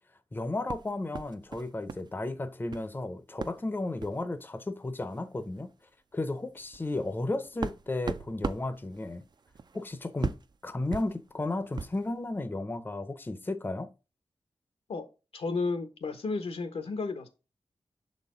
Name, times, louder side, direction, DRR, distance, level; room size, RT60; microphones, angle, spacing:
voice 1, 0.3-5.7 6.1-9.2 9.7-10.4 10.6-13.9, left 2 dB, 20° left, 0.6 m, -34 dB
sound 1, 0.7-2.1 2.4-2.9 3.4-3.6 4.0-4.2 5.1-5.2 5.6-5.7 6.2-12.1, right 4 dB, 45° right, 0.4 m, -39 dB
voice 2, 15.3-17.3, left 3 dB, 85° left, 1.0 m, -32 dB
6.4 x 4.2 x 3.7 m
wide cardioid pair, 85°, 10 cm